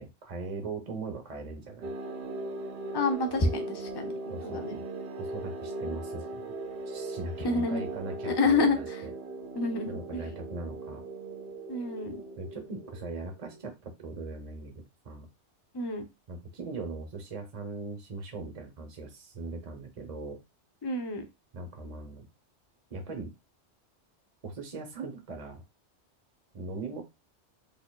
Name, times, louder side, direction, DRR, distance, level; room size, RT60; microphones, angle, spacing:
voice 1, 0.0-1.9 4.3-4.8 5.2-6.4 6.9-9.1 9.9-11.0 12.4-15.3 16.3-20.4 21.5-22.3 22.9-23.3 24.4-25.6 26.5-27.0, right 3 dB, 40° right, 3 dB, 0.8 m, -40 dB
sound 1, 1.8-13.6, right 2 dB, 70° right, 0.8 m, -39 dB
voice 2, 2.9-4.8 7.4-7.8 8.2-9.0 9.5-10.2 11.7-12.2 15.7-16.0 20.8-21.2, left 3 dB, 30° left, 5 dB, 0.5 m, -28 dB
4.3 x 2.8 x 2.2 m, 0.23 s
omnidirectional pair, 1.2 m